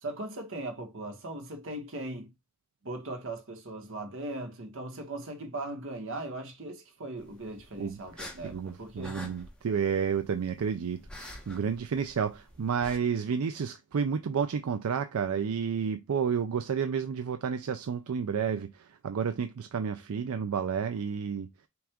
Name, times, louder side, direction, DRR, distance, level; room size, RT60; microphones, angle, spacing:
voice 1, 0.0-2.3 2.8-9.2, right 2 dB, 60° right, 1.3 m, -39 dB
sound 1, 7.2-13.0, left 1 dB, 5° left, 0.9 m, -48 dB
voice 2, 8.4-21.5, right 6 dB, 80° right, 0.4 m, -31 dB
5.9 x 2.5 x 3.5 m
head